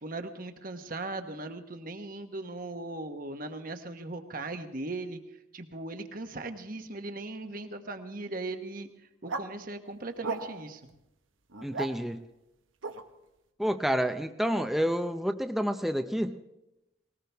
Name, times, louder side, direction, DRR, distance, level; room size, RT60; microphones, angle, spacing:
voice 1, 0.0-5.2 5.5-8.9 9.2-10.8, right 2 dB, 45° right, 7 dB, 1.2 m, -38 dB
sound 1, 9.2-9.5 10.2-10.7 11.5-11.9 12.8-13.0, right 3 dB, 80° right, 1.2 m, -35 dB
voice 2, 11.6-12.3 13.6-16.4, equal, ahead, 6 dB, 0.5 m, -29 dB
20.5 x 18.5 x 3.5 m, 0.90 s
head